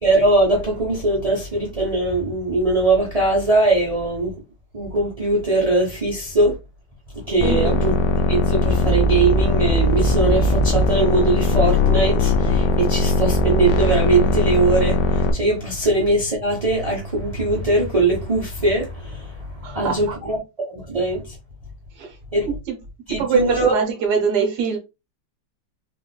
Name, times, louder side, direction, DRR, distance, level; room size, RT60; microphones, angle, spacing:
voice 1, 0.0-4.3 4.7-6.6 7.1-7.9 8.3-21.3 22.3-22.5 23.1-23.7, right 2 dB, 25° right, 0.9 m, -21 dB
sound 1, 7.4-15.3, left 2 dB, 85° left, 1.3 m, -19 dB
voice 2, 7.4-7.8 19.6-20.2 22.0-22.2 22.5-22.8 23.1-24.8, right 5 dB, 70° right, 1.4 m, -23 dB
3.8 x 2.5 x 2.2 m
omnidirectional pair, 1.8 m